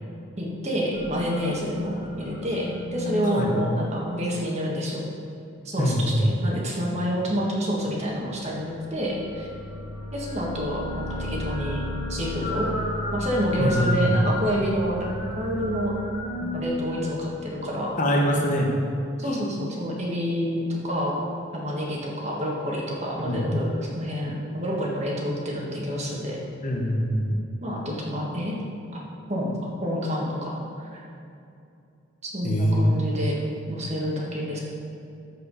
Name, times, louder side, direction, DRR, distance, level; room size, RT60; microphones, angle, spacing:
voice 1, 0.4-5.0 5.6-9.5 10.1-11.8 12.1-12.7 13.1-15.1 15.4-15.9 16.4-17.9 19.2-21.2 21.5-23.7 23.9-26.4 27.6-28.5 29.3-29.5 29.8-31.0 32.2-33.4 33.7-34.6, equal, 30° right, -3 dB, 1.6 m, -28 dB
sound 1, 0.9-4.5 8.8-18.0, left 1 dB, 15° right, 1.9 m, -33 dB
voice 2, 5.8-6.2 13.6-13.9 18.0-18.7 23.2-23.5 26.6-27.4 32.4-32.9, equal, 40° left, 0 dB, 1.0 m, -23 dB
14.0 x 4.8 x 4.8 m, 2.6 s
head